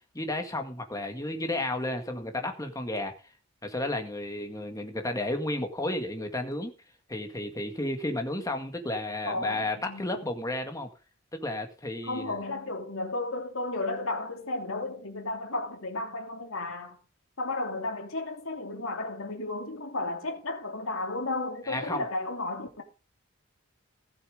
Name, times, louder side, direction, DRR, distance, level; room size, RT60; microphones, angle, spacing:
voice 1, 0.1-3.1 3.6-6.7 7.1-10.9 11.3-12.4 21.7-22.0, left 1 dB, 15° left, 2.0 m, -32 dB
voice 2, 9.3-10.1 12.0-17.0 17.4-22.8, left 2 dB, 65° left, 2.9 m, -33 dB
15.5 x 7.0 x 5.2 m
head